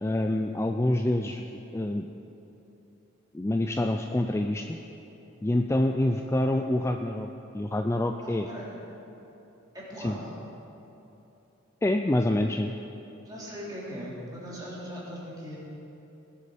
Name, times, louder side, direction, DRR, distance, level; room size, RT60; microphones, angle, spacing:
voice 1, 0.0-1.5 1.7-2.0 3.3-4.6 5.4-7.3 7.5-8.5 10.0-10.2 11.8-12.7, left 1 dB, 15° left, 5 dB, 0.4 m, -26 dB
voice 2, 8.2-8.7 9.7-10.3 13.2-15.6, equal, 20° right, -7 dB, 3.5 m, -39 dB
19.5 x 8.4 x 5.0 m, 2.9 s
head